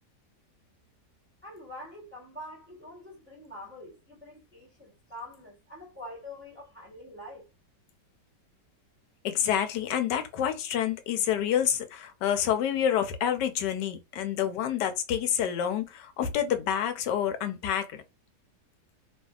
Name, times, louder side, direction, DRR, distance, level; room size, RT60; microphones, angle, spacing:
voice 1, 1.4-7.5, left 1 dB, 10° right, 0.8 m, -45 dB
voice 2, 9.2-18.0, left 9 dB, 85° left, 1.2 m, -28 dB
2.7 x 2.5 x 2.3 m
omnidirectional pair, 1.8 m